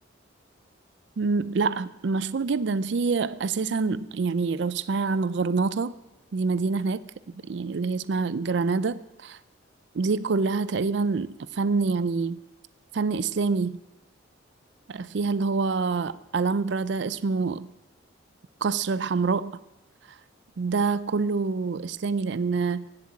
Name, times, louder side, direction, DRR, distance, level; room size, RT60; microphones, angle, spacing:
voice 1, 1.2-6.0 6.3-7.0 7.3-9.4 9.9-12.4 12.9-13.8 14.9-17.7 18.6-19.6 20.6-22.9, right 4 dB, 60° right, 0.4 m, -26 dB
16.0 x 7.7 x 8.5 m
head